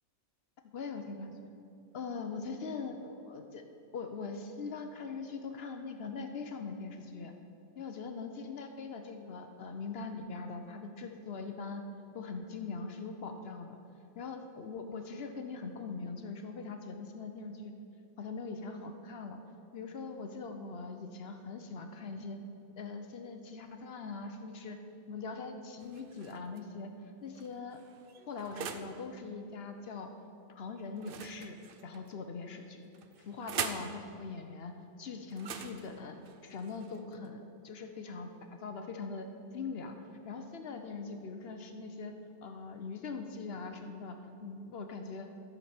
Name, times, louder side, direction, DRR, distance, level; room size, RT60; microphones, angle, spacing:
voice 1, 0.7-1.5 1.9-3.6 3.9-7.3 7.8-11.8 12.1-13.8 14.1-17.7 18.2-19.4 19.7-22.4 22.8-24.8 25.1-26.9 27.2-27.8 28.3-30.1 30.5-31.5 31.8-32.9 33.2-34.7 35.0-36.2 36.4-38.3 38.6-39.3 39.5-39.9 40.2-42.1 42.4-45.3, left 4 dB, 55° left, 5 dB, 0.8 m, -41 dB
sound 1, 25.8-26.6 27.3-29.0 31.0-32.1 32.9-33.9 35.3-37.3, right 7 dB, 60° right, 0.6 m, -42 dB
14.0 x 6.8 x 4.3 m, 2.7 s
omnidirectional pair, 1.4 m